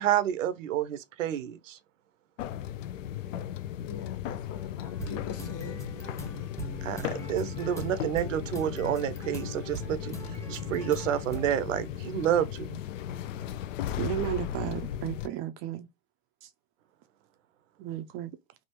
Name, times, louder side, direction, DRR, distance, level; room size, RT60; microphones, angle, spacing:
voice 1, 0.0-1.8 6.8-12.8, right 10 dB, 85° right, 0.7 m, -29 dB
sound 1, 2.4-15.3, left 10 dB, 80° left, 0.5 m, -36 dB
voice 2, 3.8-5.8, left 8 dB, 40° left, 1.1 m, -41 dB
sound 2, 4.8-11.5, right 1 dB, 10° left, 0.8 m, -41 dB
voice 3, 14.0-15.9 17.8-18.3, right 13 dB, 35° right, 0.4 m, -33 dB
3.4 x 2.4 x 2.9 m
hypercardioid pair, 110°, 37 cm